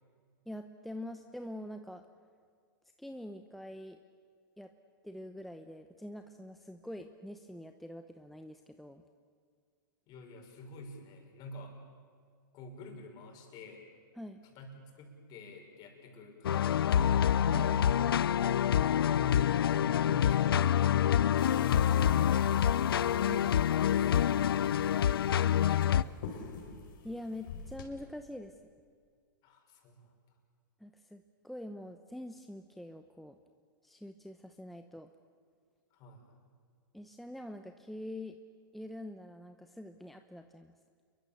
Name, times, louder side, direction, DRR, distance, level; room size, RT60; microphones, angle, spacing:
voice 1, 0.5-2.0 3.0-4.0 4.6-4.7 5.0-9.0 14.2-14.4 17.5-18.0 27.0-28.5 30.8-33.4 33.8-35.1 36.9-38.4 38.7-40.7, left 1 dB, ahead, 6 dB, 0.9 m, -45 dB
voice 2, 10.1-11.8 12.5-13.9 14.4-17.3 19.0-19.4 19.7-23.1 23.9-26.4 29.4-30.1 35.9-36.4, left 1 dB, 35° left, 2 dB, 6.0 m, -48 dB
sound 1, 16.4-26.0, left 10 dB, 85° left, 0.6 m, -27 dB
sound 2, 21.4-27.9, left 6 dB, 65° left, 4.9 m, -49 dB
29.0 x 23.0 x 7.2 m, 2.1 s
hypercardioid pair, 135°, 12 cm